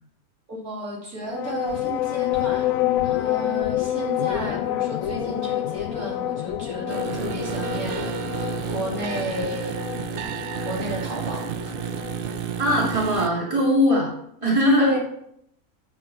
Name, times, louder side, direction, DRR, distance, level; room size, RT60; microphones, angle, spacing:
voice 1, 0.5-2.7 3.0-9.8 10.6-11.9 14.8-15.0, right 1 dB, 85° right, -3 dB, 3.1 m, -32 dB
sound 1, 1.3-13.2, left 13 dB, 75° left, 1.0 m, -28 dB
sound 2, 6.9-13.3, right 9 dB, 70° right, 0.5 m, -31 dB
voice 2, 12.6-14.1 14.4-14.9, left 1 dB, 20° right, -4 dB, 2.3 m, -20 dB
10.5 x 6.5 x 4.4 m, 0.73 s
omnidirectional pair, 1.5 m